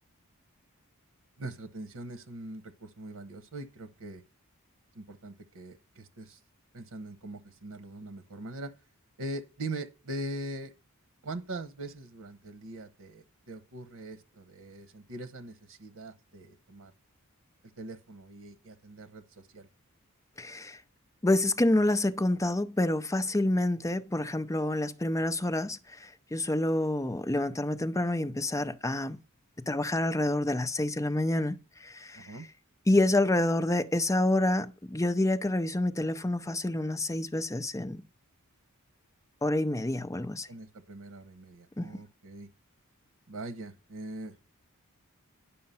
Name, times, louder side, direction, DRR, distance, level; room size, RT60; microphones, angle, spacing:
voice 1, 1.4-4.2 4.9-6.4 6.7-8.7 9.2-10.7 11.2-16.9 17.8-19.7 32.1-32.5 40.5-42.5 43.3-44.3, right 2 dB, 85° right, 1.0 m, -42 dB
voice 2, 20.4-20.8 21.2-29.2 29.7-32.4 32.9-38.0 39.4-40.5 41.8-41.9, left 1 dB, 15° left, 0.6 m, -28 dB
10.5 x 5.7 x 5.6 m
head